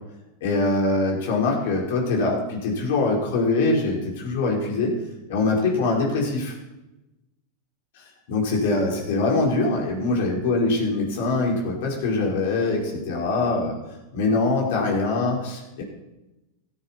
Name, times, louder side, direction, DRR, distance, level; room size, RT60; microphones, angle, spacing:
voice 1, 0.4-5.0 5.3-6.5 8.3-13.8 14.1-15.8, left 3 dB, 70° left, -1 dB, 5.0 m, -23 dB
16.0 x 10.5 x 4.6 m, 0.98 s
hypercardioid pair, 110°, 0 cm